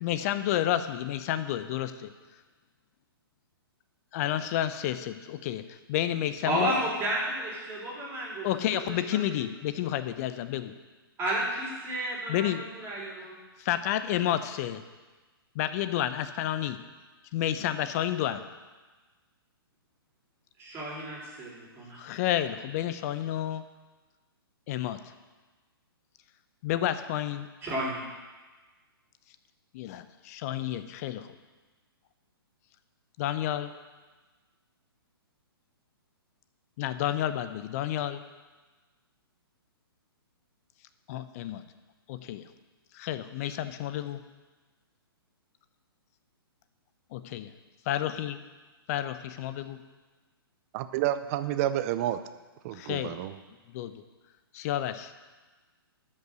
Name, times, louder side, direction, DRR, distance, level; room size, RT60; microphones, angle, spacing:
voice 1, 0.0-2.1 4.1-6.7 8.4-10.7 12.3-12.7 13.6-14.8 15.5-16.8 17.3-18.5 22.0-23.6 24.7-25.1 26.6-27.5 29.7-31.3 33.2-33.7 36.8-38.2 41.1-41.6 42.1-42.5 42.9-44.2 47.1-47.5 47.8-48.4 48.9-49.8 52.7-53.2 53.7-54.0 54.5-55.1, left 12 dB, 40° left, 11 dB, 0.7 m, -30 dB
voice 2, 6.5-8.5 8.7-8.8 9.1-9.3 11.2-12.5 12.8-13.3 20.6-22.0 27.6-28.0, right 1 dB, 20° right, -5 dB, 3.4 m, -32 dB
voice 3, 50.7-52.2 52.6-53.3, right 12 dB, 35° right, 12 dB, 0.6 m, -29 dB
11.5 x 5.6 x 6.3 m, 1.3 s
hypercardioid pair, 135°, 13 cm